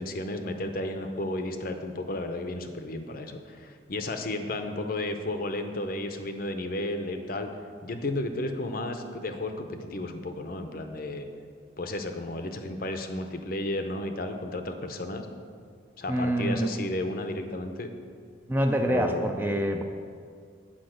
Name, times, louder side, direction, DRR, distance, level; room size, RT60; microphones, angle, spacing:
voice 1, 0.0-7.5 7.8-11.3 11.8-15.3 16.0-17.9 18.9-19.2, left 1 dB, 50° left, 6 dB, 0.7 m, -33 dB
voice 2, 16.1-16.7 18.5-19.8, right 1 dB, 10° right, 4 dB, 0.4 m, -26 dB
8.7 x 5.1 x 7.7 m, 2.1 s
head